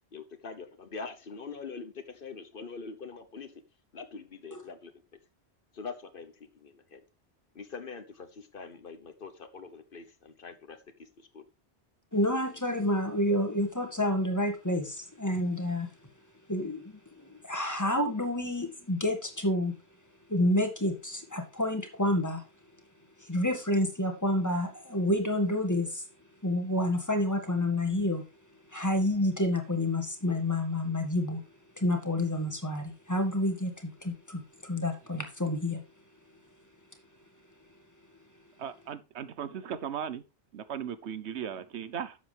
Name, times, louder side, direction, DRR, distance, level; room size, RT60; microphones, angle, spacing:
voice 1, 0.1-3.5 3.9-4.9 5.7-7.0 7.5-10.8 11.3-11.4, left 5 dB, 55° left, 1.2 m, -43 dB
voice 2, 12.1-15.9 16.5-19.7 20.3-22.4 23.2-26.0 26.4-28.2 28.7-31.4 31.8-35.8, left 1 dB, 15° left, 1.7 m, -29 dB
voice 3, 38.6-40.2 40.5-42.2, right 8 dB, 85° right, 1.1 m, -37 dB
11.5 x 7.4 x 3.4 m
omnidirectional pair, 1.1 m